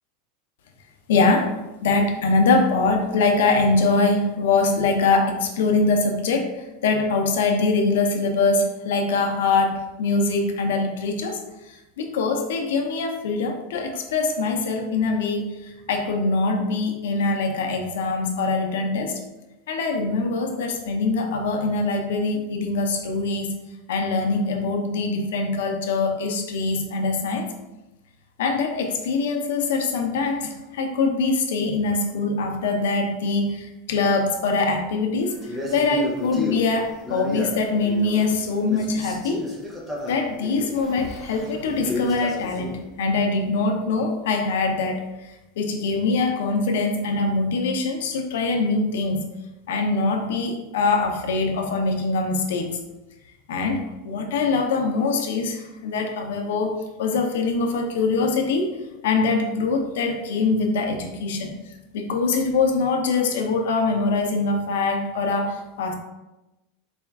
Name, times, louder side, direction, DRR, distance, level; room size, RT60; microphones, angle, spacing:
voice 1, 1.1-1.5 1.8-19.2 19.7-23.5 23.9-27.5 28.4-39.5 40.1-49.2 49.7-52.7 53.5-58.8 59.0-65.9, left 3 dB, 85° left, 4 dB, 0.6 m, -23 dB
Male speech man speaking, 35.4-38.4 38.7-42.8, left 1 dB, 5° right, 0.6 m, -32 dB
4.2 x 2.3 x 3.5 m, 1.0 s
supercardioid pair, 180°, 0 cm